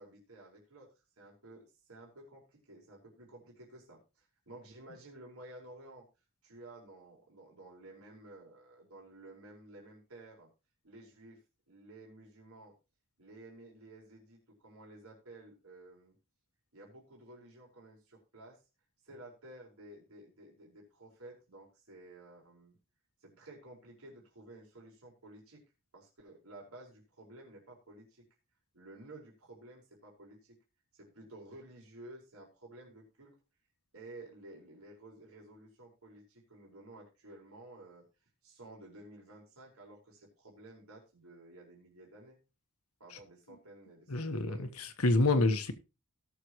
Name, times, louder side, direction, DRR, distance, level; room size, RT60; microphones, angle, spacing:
voice 1, 0.0-1.6 1.9-6.1 6.4-10.5 10.8-11.4 11.7-12.8 13.2-16.2 16.7-18.6 19.0-22.8 23.2-25.6 25.9-28.3 28.7-30.6 30.9-33.3 33.9-38.0 38.4-42.4 43.0-44.7, right 2 dB, 75° right, 4.2 m, -53 dB
voice 2, 44.1-45.7, left 2 dB, 80° left, 1.4 m, -28 dB
18.0 x 6.9 x 3.1 m
head